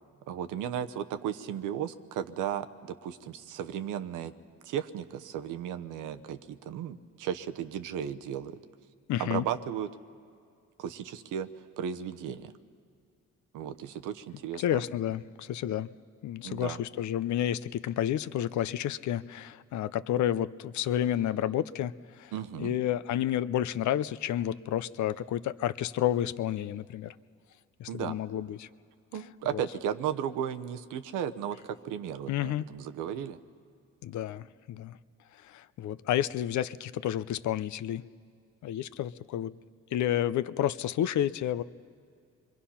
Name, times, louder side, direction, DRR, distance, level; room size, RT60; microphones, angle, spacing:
voice 1, 0.3-4.3 4.6-8.6 9.2-9.9 10.8-11.5 11.8-12.5 13.5-14.8 16.4-16.8 22.3-22.7 27.9-28.2 29.1-33.4, right 9 dB, 90° right, 9 dB, 0.9 m, -35 dB
voice 2, 9.1-9.4 14.6-15.9 16.2-21.9 22.2-22.3 22.6-27.1 27.8-28.7 29.5-29.6 32.3-32.6 34.0-35.0 35.4-38.0 38.6-39.5 39.9-41.6, left 11 dB, 70° left, 16 dB, 0.6 m, -30 dB
27.0 x 23.0 x 5.8 m, 2.3 s
cardioid pair, 90°, 30 cm